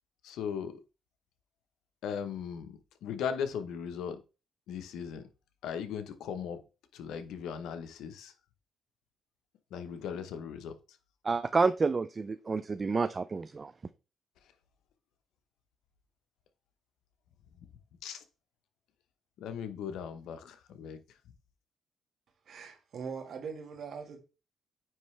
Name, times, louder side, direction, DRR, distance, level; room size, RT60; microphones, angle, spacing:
voice 1, 0.2-0.7 2.0-4.2 4.7-5.3 5.6-6.6 6.9-8.3 9.7-10.7 18.0-18.2 19.4-21.0, left 7 dB, 85° left, 0.9 m, -38 dB
voice 2, 11.2-13.7, right 4 dB, 30° right, 0.4 m, -29 dB
voice 3, 22.5-24.2, right 6 dB, 60° right, 1.6 m, -41 dB
9.2 x 3.3 x 3.3 m
cardioid pair, 90°, 0 cm